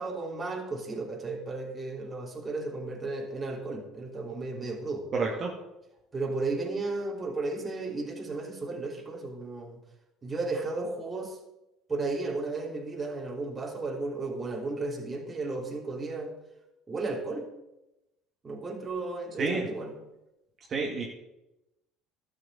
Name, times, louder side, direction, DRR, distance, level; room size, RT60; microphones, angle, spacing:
voice 1, 0.0-5.0 6.1-9.8 10.2-11.4 11.9-16.3 16.9-17.5 18.4-19.9, right 3 dB, 25° right, 1 dB, 3.1 m, -34 dB
voice 2, 5.1-5.5 19.4-19.6 20.7-21.0, right 4 dB, 45° right, -2 dB, 2.3 m, -29 dB
12.5 x 6.8 x 7.6 m, 0.92 s
supercardioid pair, 90°, 0 cm